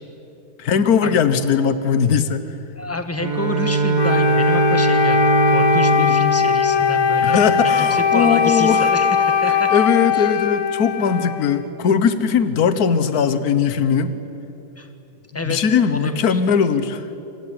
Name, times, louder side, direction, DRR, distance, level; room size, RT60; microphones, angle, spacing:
voice 1, 0.6-2.4 7.2-8.9 9.5-14.2 15.4-17.0, left 6 dB, 50° left, 12 dB, 1.5 m, -19 dB
voice 2, 2.7-9.7 10.1-10.3 14.8-14.9 15.3-15.6 15.9-16.4, left 1 dB, 10° left, 7 dB, 1.4 m, -28 dB
Bowed string instrument, 3.2-7.8, right 4 dB, 25° right, 1.5 m, -21 dB
Wind instrument woodwind instrument, 4.0-11.7, left 6 dB, 85° left, 2.0 m, -19 dB
28.5 x 22.0 x 9.0 m, 3.0 s
omnidirectional pair, 2.2 m